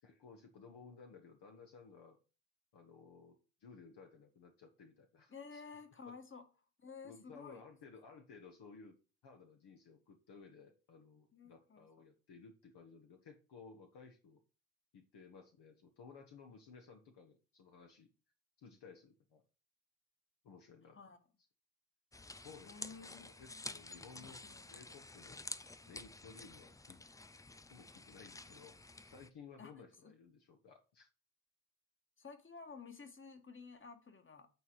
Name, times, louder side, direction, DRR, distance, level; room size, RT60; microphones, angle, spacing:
voice 1, 0.0-2.2 2.7-5.6 7.0-9.0 9.2-14.4 14.9-18.1 18.6-19.4 20.4-21.0 22.3-24.4 24.7-25.4 25.8-27.0 27.3-28.8 29.0-31.1, left 5 dB, 55° left, 1.5 m, -57 dB
voice 2, 5.3-6.4 6.8-7.6 11.3-11.9 20.8-21.2 22.7-23.6 24.1-24.6 29.6-29.7 30.0-30.1 32.2-34.5, left 5 dB, 25° left, 1.7 m, -53 dB
sound 1, 22.1-29.3, left 3 dB, 10° left, 0.4 m, -50 dB
8.9 x 4.2 x 4.8 m
hypercardioid pair, 65°, 48 cm